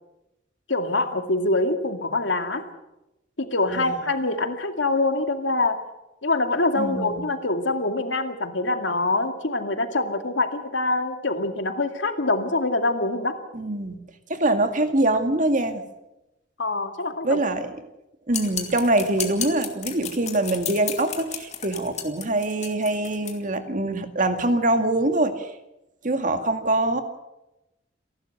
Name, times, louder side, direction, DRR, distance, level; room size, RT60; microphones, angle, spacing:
voice 1, 0.7-2.6 3.4-5.8 6.2-13.4 16.6-17.4, left 2 dB, 90° left, 6 dB, 2.3 m, -24 dB
voice 2, 6.8-7.2 13.5-14.0 14.3-15.8 17.2-17.7 18.3-25.5 26.0-27.0, right 2 dB, 45° right, 7 dB, 2.1 m, -24 dB
sound 1, 18.3-23.4, left 8 dB, 40° left, 2.6 m, -33 dB
29.0 x 12.0 x 8.0 m, 0.94 s
head